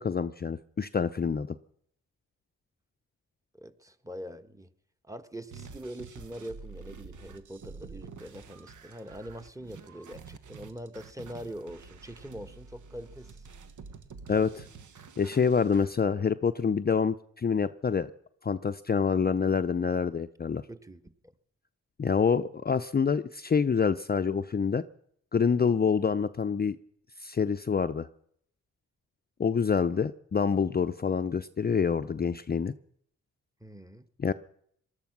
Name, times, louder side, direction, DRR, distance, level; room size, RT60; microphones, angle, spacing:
voice 1, 0.0-1.6 14.3-14.7 15.2-18.1 18.4-20.6 22.0-24.8 25.3-26.8 27.2-28.1 29.4-32.7 34.2-34.3, left 6 dB, 30° left, 11 dB, 0.6 m, -27 dB
voice 2, 3.5-4.7 5.0-13.5 20.7-21.1 33.6-34.0, equal, 10° right, 9 dB, 1.4 m, -43 dB
sound 1, 5.5-15.9, right 5 dB, 70° right, 1.4 m, -48 dB
19.5 x 12.0 x 6.1 m, 0.66 s
supercardioid pair, 55°, 31 cm